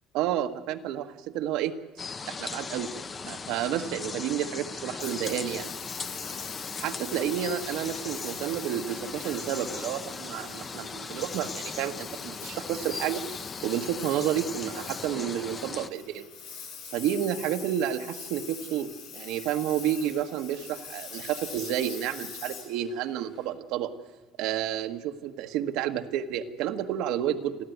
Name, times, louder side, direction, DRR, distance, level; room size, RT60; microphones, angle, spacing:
voice 1, 0.1-1.7 2.3-2.9 3.2-5.7 6.8-13.2 13.6-16.3 16.9-23.9 24.4-27.6, right 10 dB, 75° right, 5 dB, 1.3 m, -30 dB
sound 1, 2.0-15.9, left 4 dB, 25° left, 0.8 m, -38 dB
Engine, 5.0-23.4, left 6 dB, 85° left, 7.1 m, -43 dB
29.5 x 12.0 x 9.3 m, 1.2 s
cardioid pair, 135°, 0 cm